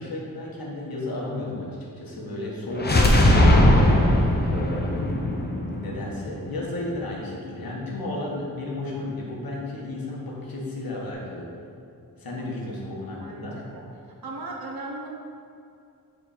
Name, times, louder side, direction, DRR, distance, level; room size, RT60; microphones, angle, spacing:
voice 1, 0.0-11.5 12.2-13.6, left 2 dB, 85° left, -3 dB, 1.5 m, -33 dB
sound 1, 2.8-6.6, left 1 dB, 30° left, 0.8 m, -19 dB
voice 2, 13.2-13.8 14.2-15.1, right 2 dB, 85° right, -1 dB, 1.2 m, -37 dB
7.5 x 4.4 x 4.2 m, 2.5 s
wide cardioid pair, 105°, 35 cm